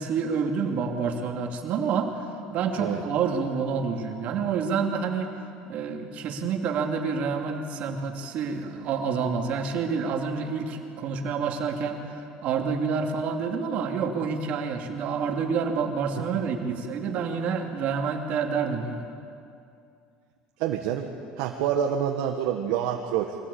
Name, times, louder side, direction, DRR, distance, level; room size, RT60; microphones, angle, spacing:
voice 1, 0.0-5.3 5.7-19.1, right 5 dB, 55° right, 3 dB, 2.6 m, -28 dB
voice 2, 20.6-21.1 21.4-23.4, right 9 dB, 80° right, 2 dB, 1.5 m, -27 dB
24.0 x 16.5 x 8.6 m, 2.5 s
cardioid pair, 125°, 3 cm